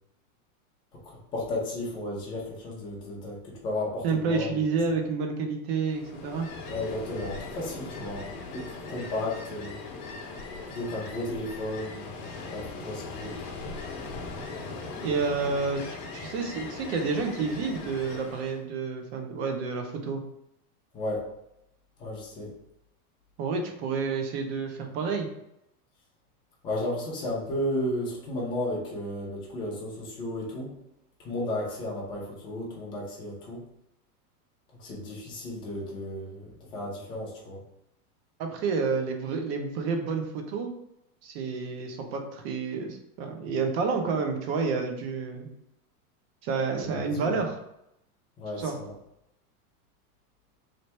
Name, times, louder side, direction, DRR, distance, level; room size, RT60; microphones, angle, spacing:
voice 1, 1.0-4.6 6.7-9.8 10.7-13.4 20.9-21.2 22.0-22.5 26.6-30.7 31.2-33.6 34.8-37.6 46.8-47.3 48.4-48.9, left 1 dB, 10° left, -4 dB, 0.4 m, -34 dB
voice 2, 4.0-6.5 15.0-20.2 23.4-25.3 38.4-40.7 41.2-45.5 46.4-47.6 48.6-48.8, right 4 dB, 40° right, 4 dB, 0.7 m, -29 dB
Ocean, 5.8-18.6, left 3 dB, 45° left, 0.8 m, -39 dB
3.4 x 2.6 x 4.1 m, 0.81 s
supercardioid pair, 150°, 47 cm